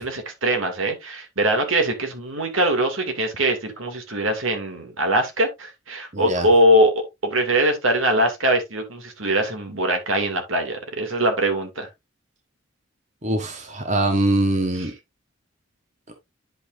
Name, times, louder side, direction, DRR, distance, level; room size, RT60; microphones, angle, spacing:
voice 1, 0.0-6.9 7.2-11.9 14.8-14.9, right 1 dB, 80° right, 2.6 m, -22 dB
voice 2, 6.1-6.5 13.2-14.9, right 1 dB, 35° right, 1.3 m, -22 dB
10.5 x 5.8 x 2.6 m
head